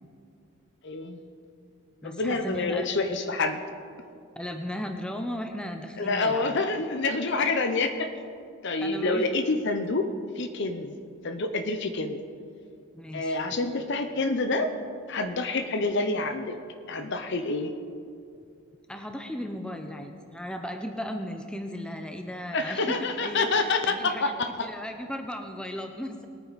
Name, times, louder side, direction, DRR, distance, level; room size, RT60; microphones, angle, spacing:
voice 1, 0.8-1.2 2.0-3.6 6.0-8.1 8.6-10.1 10.4-11.0 11.2-12.2 13.1-14.7 15.1-16.5 16.9-17.7 22.5-24.5, left 3 dB, 50° left, 8 dB, 0.7 m, -27 dB
voice 2, 2.0-2.9 4.4-6.6 8.8-9.3 12.9-13.4 18.9-26.3, equal, 5° left, 5 dB, 0.6 m, -36 dB
20.5 x 9.3 x 4.1 m, 2.4 s
head